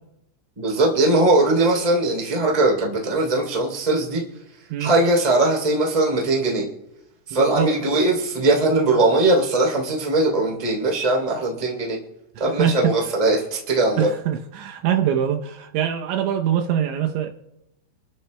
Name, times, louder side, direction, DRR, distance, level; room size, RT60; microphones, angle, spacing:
voice 1, 0.6-4.2 4.8-6.7 7.3-12.0 12.4-14.1, right 2 dB, 10° right, 2.0 m, -20 dB
voice 2, 7.3-7.7 12.6-12.9 14.0-17.3, right 9 dB, 80° right, 3.0 m, -23 dB
29.0 x 12.0 x 2.2 m
omnidirectional pair, 5.6 m